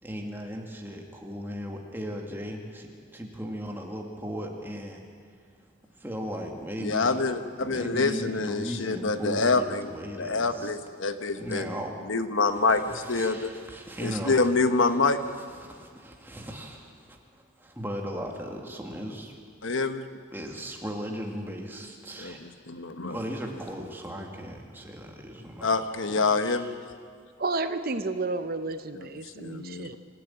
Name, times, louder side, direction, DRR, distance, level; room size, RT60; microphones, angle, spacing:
voice 1, 0.0-5.0 6.0-7.3 7.6-10.8 11.4-12.0 12.5-14.5 15.5-19.4 20.3-22.4 23.1-26.7, equal, 10° right, 1 dB, 2.2 m, -37 dB
voice 2, 6.8-9.9 10.2-11.7 12.0-13.5 14.0-15.2 19.6-20.1 22.2-23.2 25.6-26.8 28.9-30.0, left 3 dB, 70° left, 9 dB, 1.1 m, -26 dB
voice 3, 27.4-30.0, right 3 dB, 45° right, 10 dB, 0.7 m, -31 dB
26.0 x 14.0 x 8.8 m, 2.1 s
head